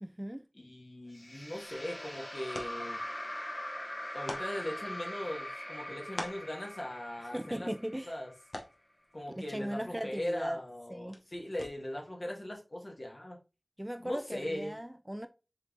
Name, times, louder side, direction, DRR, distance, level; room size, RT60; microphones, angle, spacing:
voice 1, 0.0-0.5 7.3-8.2 9.3-10.6 10.9-11.2 13.8-15.3, equal, 15° right, 0.4 m, -38 dB
voice 2, 0.6-3.0 4.1-7.7 8.1-8.3 9.1-13.4 14.0-14.8, left 1 dB, 60° left, 1.6 m, -39 dB
sound 1, 1.1-8.4, left 1 dB, 40° left, 2.3 m, -42 dB
sound 2, 1.4-12.1, left 1 dB, 85° left, 0.9 m, -49 dB
4.7 x 3.6 x 3.0 m
wide cardioid pair, 50°, 0 cm